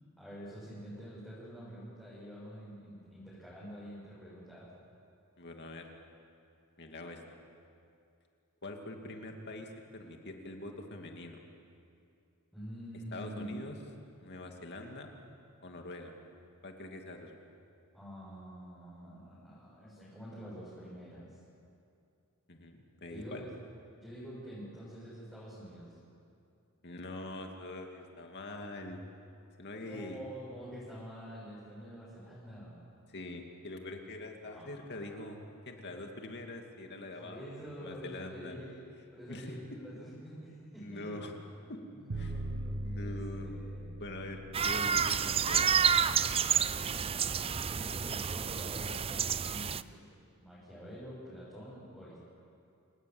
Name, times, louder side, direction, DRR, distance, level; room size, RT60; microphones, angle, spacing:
voice 1, 0.2-4.8 12.5-13.6 17.9-21.4 23.1-23.5 24.0-26.0 29.7-32.8 34.4-34.8 35.2-35.3 37.0-38.8 39.1-41.2 41.6-44.0 46.4-47.4 47.7-50.1 50.4-52.2, equal, 5° left, -10 dB, 7.3 m, -47 dB
voice 2, 5.4-5.9 6.8-7.2 8.6-11.4 13.1-13.8 14.2-15.1 15.6-16.1 16.6-17.4 22.5-23.4 26.8-29.0 29.6-30.2 33.1-35.4 35.7-38.7 39.3-39.5 40.8-41.3 41.7-41.8 42.1-42.4 42.8-43.6 44.0-45.7, left 2 dB, 50° left, 3 dB, 2.6 m, -44 dB
sound 1, 42.1-46.2, right 1 dB, 85° right, 1.0 m, -40 dB
sound 2, 44.5-49.8, right 7 dB, 25° right, 0.5 m, -29 dB
29.0 x 19.0 x 8.0 m, 2.5 s
head